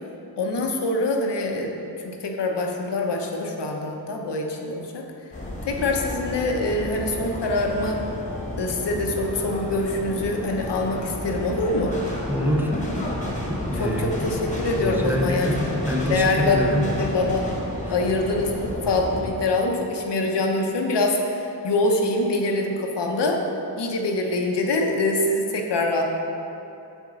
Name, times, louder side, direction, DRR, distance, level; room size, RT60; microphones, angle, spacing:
voice 1, 0.4-1.7 2.0-5.0 5.7-8.0 8.6-12.0 13.8-15.5 16.1-17.4 17.9-23.4 23.8-26.0, left 2 dB, 85° left, 1 dB, 0.9 m, -24 dB
sound 1, 5.3-19.3, left 1 dB, 20° left, 1.4 m, -31 dB
voice 2, 12.3-14.3 14.8-16.9 17.9-18.0, left 1 dB, 5° right, -1 dB, 0.6 m, -26 dB
8.0 x 3.6 x 6.2 m, 3.0 s
wide cardioid pair, 140°, 41 cm